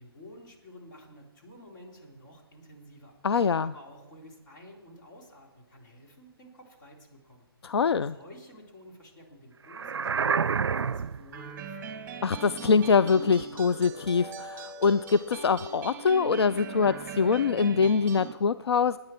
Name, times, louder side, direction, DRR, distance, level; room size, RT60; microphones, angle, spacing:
voice 1, 0.0-3.1 3.6-7.5 8.0-12.1, left 1 dB, 50° left, 0 dB, 3.6 m, -51 dB
voice 2, 3.2-3.7 7.6-8.2 12.2-19.0, left 5 dB, 85° left, 15 dB, 0.4 m, -24 dB
sound 1, 9.7-11.3, right 6 dB, 90° right, 0.4 m, -28 dB
sound 2, 11.3-18.3, right 4 dB, 15° right, 1.5 m, -40 dB
19.0 x 9.6 x 4.5 m, 1.2 s
hypercardioid pair, 145°, 13 cm